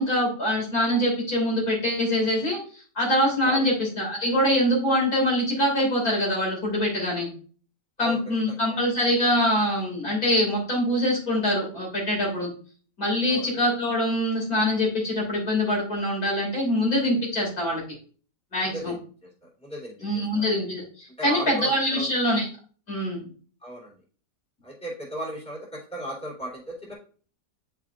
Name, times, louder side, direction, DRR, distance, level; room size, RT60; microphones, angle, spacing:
voice 1, 0.0-2.6 2.9-7.3 8.0-12.5 13.0-17.8 18.5-18.9 20.0-22.5 22.9-23.3, equal, 55° left, -2 dB, 3.3 m, -24 dB
voice 2, 18.6-19.3 19.6-20.4 21.2-22.1 23.6-23.9 24.6-26.9, right 1 dB, 5° left, -6 dB, 3.1 m, -36 dB
10.5 x 5.0 x 2.5 m, 0.42 s
omnidirectional pair, 1.9 m